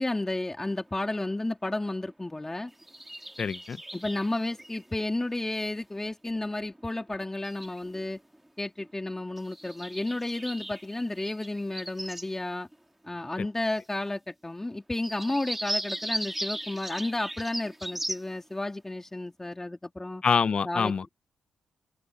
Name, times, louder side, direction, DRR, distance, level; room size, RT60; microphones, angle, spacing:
voice 1, 0.0-2.7 3.9-8.2 8.6-12.7 13.1-20.2 20.6-21.1, left 2 dB, 20° left, 3.6 m, -32 dB
sound 1, 0.7-0.9 1.3-1.4 2.0-4.9 5.2-5.8 6.4-7.1 7.4-8.5 8.8-8.9 9.2-12.3 12.7-12.8 13.0-13.1 13.6-13.7 14.6-14.7 14.9-18.3, right 1 dB, 10° right, 2.4 m, -38 dB
voice 2, 3.4-3.8 13.4-13.5 20.2-21.0, left 6 dB, 55° left, 1.0 m, -26 dB
supercardioid pair, 50°, 2 cm